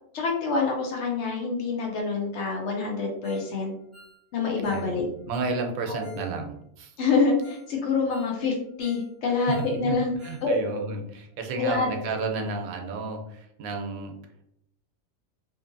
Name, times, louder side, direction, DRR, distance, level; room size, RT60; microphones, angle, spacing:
voice 1, 0.1-3.7 4.3-5.1 5.9-6.1 7.0-10.8 11.6-11.9, left 4 dB, 65° left, 1 dB, 0.8 m, -26 dB
Ringtone, 3.2-3.5 3.8-6.3 6.6-6.7 7.1-7.2 7.4-7.7 8.0-9.1 9.3-10.5 10.7-10.8 11.3-11.4, left 2 dB, 10° left, 1.0 m, -53 dB
voice 2, 4.7-6.9 9.5-10.0 10.2-14.2, right 3 dB, 85° right, 3 dB, 1.0 m, -32 dB
2.7 x 2.6 x 2.5 m, 0.76 s
omnidirectional pair, 1.4 m